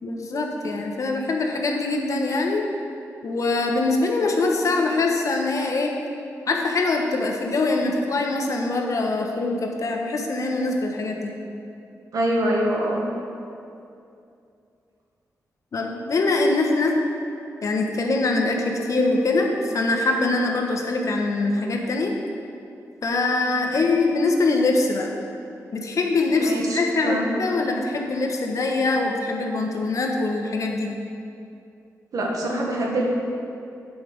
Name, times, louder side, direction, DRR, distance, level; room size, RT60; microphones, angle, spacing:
voice 1, 0.0-2.6 3.2-5.9 6.5-11.3 15.7-17.0 17.6-22.1 23.0-25.1 25.7-30.9, left 3 dB, 60° left, 2 dB, 1.1 m, -23 dB
voice 2, 12.1-13.1 26.3-27.3 32.1-33.1, right 1 dB, 70° right, -1 dB, 1.6 m, -24 dB
9.2 x 5.2 x 6.4 m, 2.6 s
cardioid pair, 80°, 6 cm